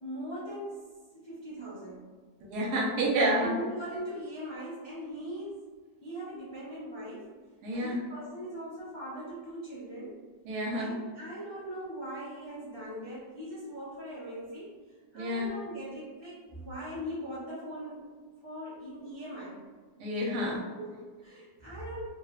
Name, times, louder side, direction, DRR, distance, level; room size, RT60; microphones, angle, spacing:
voice 1, 0.0-0.8 1.1-2.1 3.0-5.6 6.0-7.3 7.7-10.2 10.7-18.1 18.4-19.6 20.6-22.0, right 1 dB, 40° left, -11 dB, 0.3 m, -40 dB
voice 2, 2.5-3.5 7.6-8.0 10.5-10.9 15.1-15.5 20.0-20.6, right 1 dB, 80° right, -3 dB, 1.2 m, -29 dB
3.0 x 2.0 x 2.3 m, 1.4 s
omnidirectional pair, 1.8 m